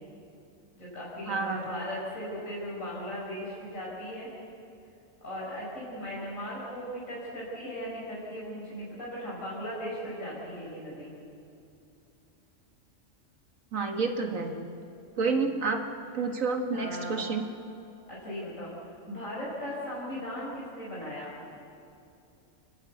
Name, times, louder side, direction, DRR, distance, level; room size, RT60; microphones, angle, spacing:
voice 1, 0.7-4.3 5.2-11.1 16.7-17.3 18.1-21.3, equal, 75° left, -7 dB, 5.1 m, -37 dB
voice 2, 1.3-1.7 13.7-14.5 15.2-15.8 16.1-17.5, right 4 dB, 80° right, 4 dB, 1.9 m, -29 dB
29.5 x 12.5 x 8.1 m, 2.7 s
omnidirectional pair, 1.4 m